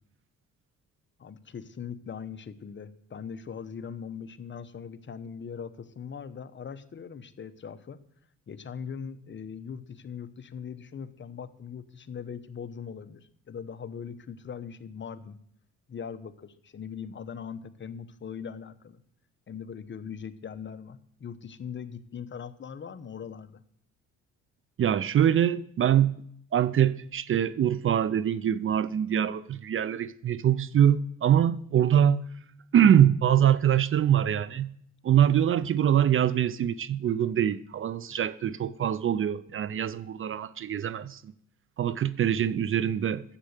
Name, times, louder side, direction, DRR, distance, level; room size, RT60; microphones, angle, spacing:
voice 1, 1.2-8.0 8.5-15.4 15.9-19.0 19.5-23.6, left 7 dB, 40° left, 1.0 m, -40 dB
voice 2, 24.8-26.1 26.5-32.2 32.7-34.7 35.0-41.3 41.8-43.2, right 10 dB, 45° right, 0.5 m, -24 dB
9.9 x 7.7 x 8.2 m
cardioid pair, 90°, 30 cm